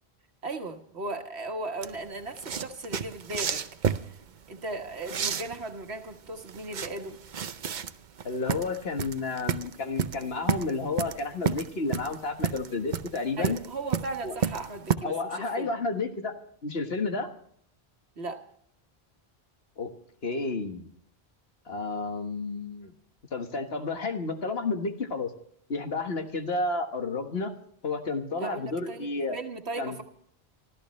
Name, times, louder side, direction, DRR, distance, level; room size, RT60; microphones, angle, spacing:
voice 1, 0.4-3.6 4.0-4.2 4.5-7.2 13.4-15.7 18.2-18.5 28.4-30.0, right 2 dB, 85° right, 4 dB, 1.8 m, -37 dB
sound 1, 1.8-15.0, right 7 dB, 50° right, 0.8 m, -31 dB
voice 2, 8.3-13.6 14.2-14.4 15.0-16.3 16.6-17.3 19.8-19.9 20.2-20.9 21.7-22.9 23.3-25.3 25.7-27.5 27.8-29.4 29.8-30.0, left 3 dB, 70° left, 5 dB, 1.7 m, -31 dB
25.0 x 14.0 x 3.2 m, 0.65 s
omnidirectional pair, 1.1 m